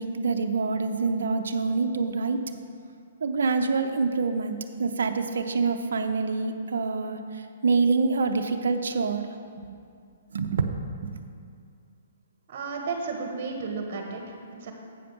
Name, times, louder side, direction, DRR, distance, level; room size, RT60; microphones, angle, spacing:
voice 1, 0.0-2.4 3.2-9.3 9.6-9.7 10.3-10.7 11.0-11.2, right 4 dB, 75° right, 6 dB, 0.5 m, -26 dB
voice 2, 12.5-14.7, right 4 dB, 45° right, 2 dB, 1.2 m, -33 dB
8.5 x 5.0 x 5.9 m, 2.4 s
hypercardioid pair, 135°, 0 cm